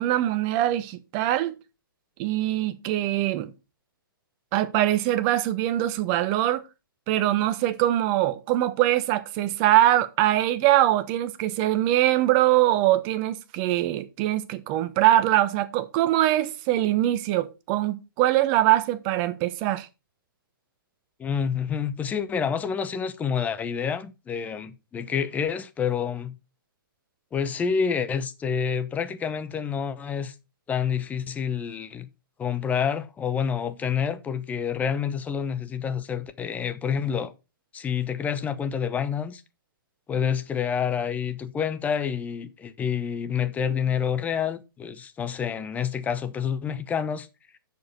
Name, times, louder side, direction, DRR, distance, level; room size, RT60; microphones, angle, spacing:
voice 1, 0.0-1.6 2.2-3.5 4.5-6.6 7.1-19.9, right 14 dB, 30° right, 1.1 m, -23 dB
voice 2, 21.2-26.3 27.3-30.3 30.7-32.1 32.4-37.3 37.7-39.4 40.1-47.3, left 7 dB, 15° left, 0.8 m, -28 dB
7.8 x 6.6 x 5.4 m
figure-of-eight pair, 125°, 12 cm